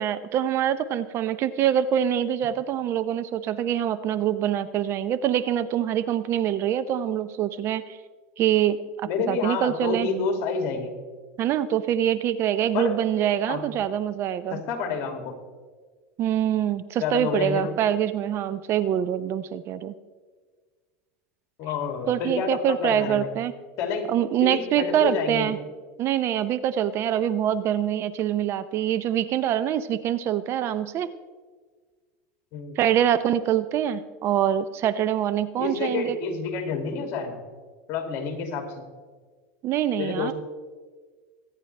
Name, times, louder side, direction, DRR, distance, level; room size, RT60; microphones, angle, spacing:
voice 1, 0.0-8.0 8.4-10.1 11.4-14.6 16.2-19.9 22.1-23.5 24.1-25.6 26.0-31.1 32.8-36.2 39.6-40.3, right 10 dB, 40° right, 14 dB, 0.6 m, -25 dB
voice 2, 9.1-11.0 12.7-13.0 13.5-13.7 14.5-15.4 17.0-17.7 21.6-23.3 23.8-24.1 24.4-25.5 32.5-32.8 35.6-37.4 37.9-38.8 40.0-40.3, left 5 dB, 50° left, 4 dB, 2.3 m, -29 dB
23.5 x 9.1 x 3.3 m, 1.5 s
supercardioid pair, 130°, 7 cm